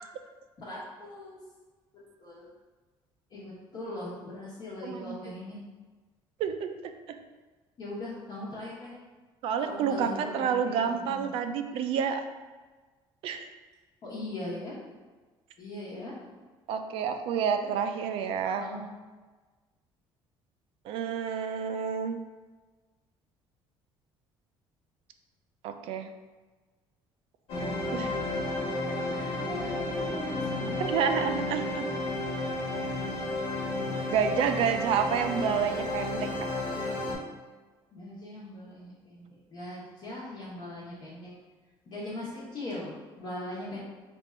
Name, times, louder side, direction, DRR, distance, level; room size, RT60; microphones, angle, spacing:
voice 1, 0.6-1.4 1.9-2.5 3.3-5.6 7.8-8.9 9.6-11.3 14.0-14.8 15.6-16.2 17.4-17.7 18.4-18.9 28.8-30.8 33.5-33.7 37.9-41.3 41.9-43.8, left 1 dB, 45° left, -8 dB, 1.1 m, -40 dB
voice 2, 4.8-5.1 6.4-6.7 7.1-7.2 9.4-12.2 13.2-13.5 16.7-18.7 20.9-22.2 25.6-26.1 27.9-28.1 30.8-31.8 34.1-36.3, right 7 dB, 65° right, 7 dB, 0.4 m, -29 dB
sound 1, 27.5-37.2, left 2 dB, 80° left, 1.4 m, -32 dB
3.5 x 2.5 x 4.3 m, 1.3 s
cardioid pair, 150°, 10 cm